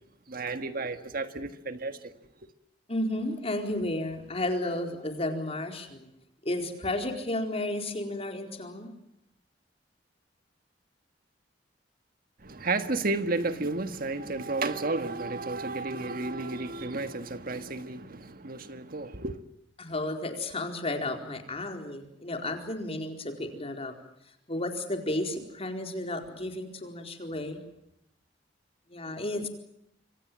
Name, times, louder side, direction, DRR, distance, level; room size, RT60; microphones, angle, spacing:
voice 1, 0.3-2.1 12.4-19.4, right 3 dB, 55° right, 1.6 m, -32 dB
voice 2, 2.9-6.1 6.4-8.9 19.8-23.9 24.5-27.6 28.9-29.5, left 1 dB, 35° left, 4.4 m, -32 dB
27.0 x 25.0 x 7.5 m
head